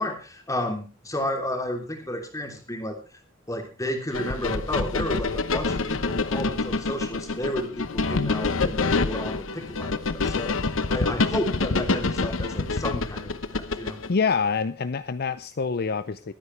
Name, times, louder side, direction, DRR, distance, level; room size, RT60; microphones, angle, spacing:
voice 1, 0.0-3.0 3.5-14.0, left 1 dB, 15° left, 4 dB, 3.2 m, -32 dB
sound 1, 4.1-14.1, left 3 dB, 75° left, 1.0 m, -27 dB
voice 2, 14.1-16.3, left 5 dB, 55° left, 13 dB, 0.6 m, -26 dB
22.5 x 9.5 x 3.3 m, 0.32 s
head